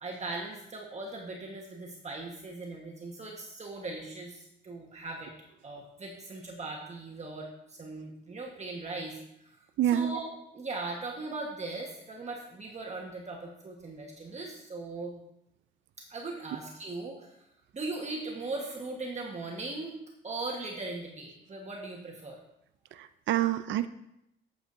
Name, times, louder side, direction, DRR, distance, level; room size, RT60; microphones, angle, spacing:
voice 1, 0.0-5.3 5.6-9.5 9.9-15.1 16.0-17.3 17.7-20.0 20.2-22.4, right 3 dB, 35° right, -1 dB, 1.3 m, -39 dB
voice 2, 9.8-10.1 22.9-23.9, right 11 dB, 70° right, 12 dB, 0.4 m, -27 dB
8.6 x 8.1 x 2.7 m, 0.82 s
cardioid pair, 90°, 20 cm